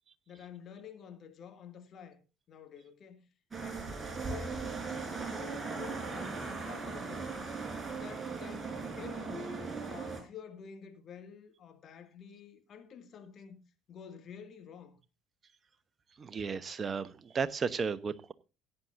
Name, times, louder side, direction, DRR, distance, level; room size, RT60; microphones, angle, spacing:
voice 1, 0.3-2.2 2.5-3.3 3.6-3.9 4.2-7.5 7.9-9.5 9.9-13.6 13.9-15.0, left 8 dB, 45° left, 2.3 m, -50 dB
sound 1, 3.5-10.2, right 4 dB, 20° right, 4.4 m, -38 dB
voice 2, 16.2-18.3, right 5 dB, 35° right, 1.0 m, -34 dB
17.0 x 9.3 x 2.7 m
hypercardioid pair, 60°, 0 cm